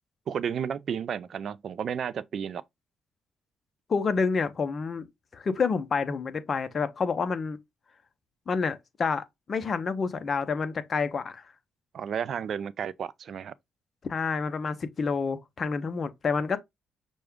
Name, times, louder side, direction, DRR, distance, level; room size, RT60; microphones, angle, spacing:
voice 1, 0.3-2.6 11.9-13.5, right 7 dB, 60° right, 0.4 m, -32 dB
voice 2, 3.9-5.0 5.3-7.6 8.5-11.4 14.1-16.6, left 5 dB, 45° left, 0.7 m, -28 dB
6.2 x 2.3 x 3.5 m
cardioid pair, 90°, 0 cm